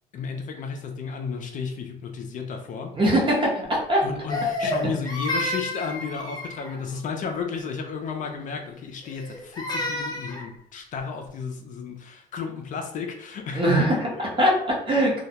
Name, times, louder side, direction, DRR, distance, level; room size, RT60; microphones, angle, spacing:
voice 1, 0.1-2.9 4.0-14.2, left 5 dB, 50° left, 4 dB, 0.4 m, -33 dB
voice 2, 3.0-4.0 13.5-15.2, right 1 dB, 30° right, -2 dB, 0.9 m, -22 dB
Crying sobbing, 4.3-6.8 9.0-10.5, left 2 dB, 25° left, 0.8 m, -30 dB
2.2 x 2.1 x 2.8 m, 0.72 s
cardioid pair, 110°, 17 cm